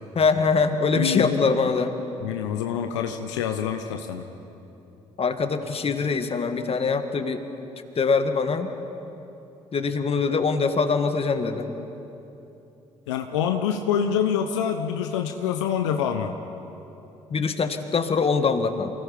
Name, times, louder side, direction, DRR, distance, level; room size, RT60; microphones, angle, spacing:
voice 1, 0.2-1.9 5.2-7.4 8.0-8.7 9.7-11.7 17.3-18.9, left 4 dB, 40° left, 7 dB, 1.9 m, -23 dB
voice 2, 0.9-1.4 2.2-4.2 13.1-16.3, left 8 dB, 80° left, 6 dB, 0.9 m, -26 dB
28.0 x 18.5 x 5.3 m, 2.9 s
hypercardioid pair, 45°, 15 cm